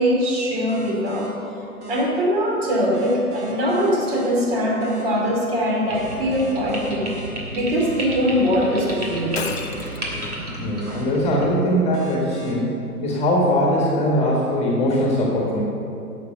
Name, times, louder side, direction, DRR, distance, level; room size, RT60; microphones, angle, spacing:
voice 1, 0.0-1.3 1.9-7.1 7.5-9.5, equal, 40° right, -2 dB, 3.0 m, -22 dB
sound 1, 0.7-1.3 1.8-2.0 2.9-4.3 4.8-5.0 5.9-7.3 7.8-8.0 8.9-10.3 10.8-11.0 11.9-12.5, equal, 20° right, 2.0 m, -39 dB
sound 2, 5.9-11.5, right 1 dB, 75° right, 3.1 m, -33 dB
Shatter, 9.3-10.2, left 8 dB, 45° left, 0.7 m, -32 dB
voice 2, 10.6-12.8 13.0-15.6, equal, 15° left, -3 dB, 1.7 m, -21 dB
11.5 x 7.2 x 6.8 m, 2.8 s
figure-of-eight pair, 120°, 45 cm